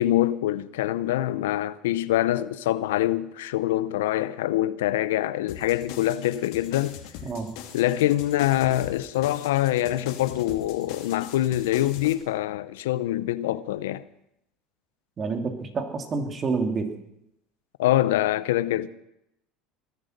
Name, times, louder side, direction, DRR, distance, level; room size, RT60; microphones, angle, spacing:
voice 1, 0.0-7.0 7.7-14.0 17.8-18.9, left 14 dB, 90° left, 0.6 m, -24 dB
sound 1, 5.5-12.1, left 10 dB, 70° left, 2.4 m, -42 dB
voice 2, 15.2-16.9, right 4 dB, 35° right, 2.7 m, -28 dB
20.0 x 10.5 x 6.5 m
supercardioid pair, 100°, 0 cm